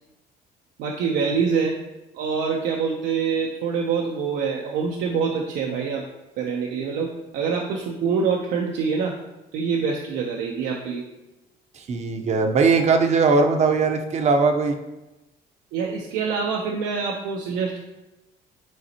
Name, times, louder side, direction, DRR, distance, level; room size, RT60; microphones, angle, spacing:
voice 1, 0.8-1.8 2.1-6.0 6.4-7.1 7.3-9.2 9.5-11.0 15.7-17.9, right 5 dB, 85° right, 0 dB, 0.8 m, -25 dB
voice 2, 11.8-14.8, right 4 dB, 40° right, 5 dB, 0.8 m, -20 dB
9.5 x 3.9 x 2.9 m, 1.0 s
cardioid pair, 110°, 17 cm